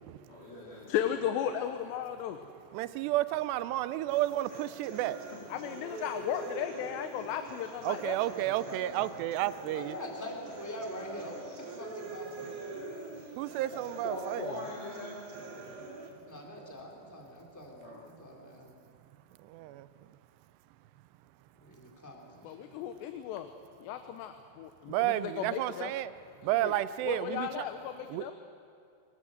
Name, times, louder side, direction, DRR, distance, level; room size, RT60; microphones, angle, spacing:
voice 1, 0.3-1.0 13.7-15.2 17.8-18.0, left 2 dB, 60° left, -7 dB, 4.8 m, -41 dB
voice 2, 0.9-2.4 5.5-8.2 22.4-23.5 23.8-25.9 26.5-26.7 27.0-28.3, left 10 dB, 90° left, 7 dB, 3.1 m, -35 dB
voice 3, 2.7-5.2 7.8-10.0 13.4-14.6 15.6-15.7 19.4-19.9 24.9-26.1 26.4-27.7 28.1-28.3, right 14 dB, 85° right, 14 dB, 2.8 m, -31 dB
sound 1, 4.1-16.1, right 3 dB, 45° right, 3.0 m, -45 dB
voice 4, 8.2-9.2 9.7-12.5 16.3-18.7 21.6-22.7, left 1 dB, 5° left, -1 dB, 2.8 m, -44 dB
24.5 x 20.0 x 7.8 m, 2.4 s
omnidirectional pair, 4.8 m